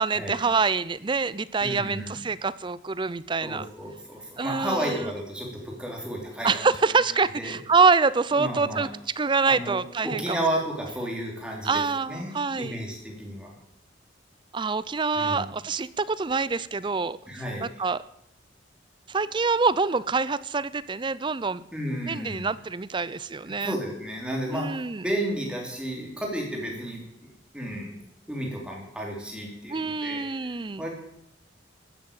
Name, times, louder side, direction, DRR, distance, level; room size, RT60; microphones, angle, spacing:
voice 1, 0.0-3.7 4.4-5.1 6.4-8.9 9.2-10.4 11.6-12.8 14.5-17.2 17.6-18.0 19.1-21.6 22.1-23.7 24.5-25.0 29.7-30.8, right 4 dB, 25° right, 18 dB, 0.5 m, -25 dB
voice 2, 1.6-2.2 3.4-6.6 7.3-7.6 8.3-8.9 9.5-13.5 15.1-15.5 17.3-17.7 21.7-22.5 23.4-28.0 28.3-30.9, right 1 dB, 5° right, -1 dB, 3.7 m, -33 dB
14.0 x 8.7 x 8.8 m, 0.80 s
head